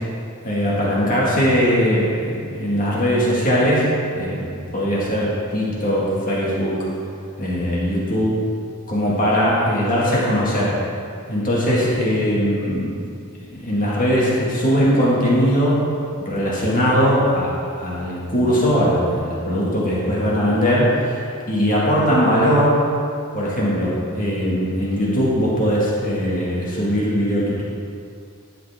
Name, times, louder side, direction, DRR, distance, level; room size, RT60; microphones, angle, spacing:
voice 1, 0.4-3.9 4.2-6.8 7.4-8.4 8.9-10.7 11.3-12.9 13.5-15.9 16.2-21.2 21.5-22.9 23.3-27.6, equal, 35° left, -6 dB, 2.0 m, -20 dB
11.5 x 7.5 x 3.6 m, 2.3 s
head